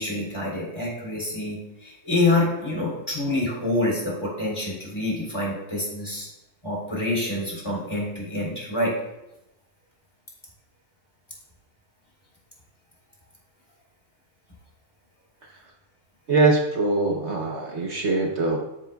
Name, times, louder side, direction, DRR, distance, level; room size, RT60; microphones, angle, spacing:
voice 1, 0.0-6.3 6.6-8.9, left 2 dB, 20° left, -4 dB, 3.9 m, -26 dB
voice 2, 16.3-18.6, right 3 dB, 55° right, 0 dB, 1.3 m, -22 dB
13.0 x 9.7 x 2.3 m, 0.92 s
omnidirectional pair, 1.4 m